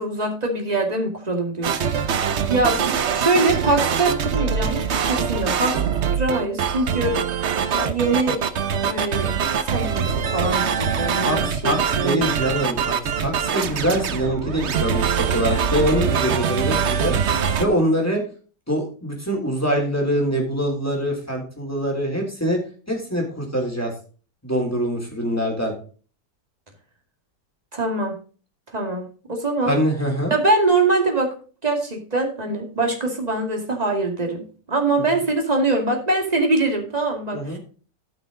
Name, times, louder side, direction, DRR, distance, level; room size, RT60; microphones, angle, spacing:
voice 1, 0.0-1.7 2.0-2.9 3.1-5.8 6.1-7.2 7.7-8.4 8.9-9.3 9.6-12.2 27.7-28.2 28.7-29.0 29.3-29.8 30.3-31.3 31.6-34.4 34.7-37.6, right 2 dB, 25° right, 2 dB, 2.4 m, -23 dB
sound 1, 1.6-17.7, right 7 dB, 50° right, 1.0 m, -23 dB
voice 2, 11.2-17.1 17.6-18.2 18.7-22.6 22.9-23.9 24.4-25.7 29.6-30.3 35.1-35.2 37.3-37.6, equal, 10° left, 0 dB, 3.4 m, -24 dB
13.5 x 6.0 x 3.9 m, 0.38 s
omnidirectional pair, 1.8 m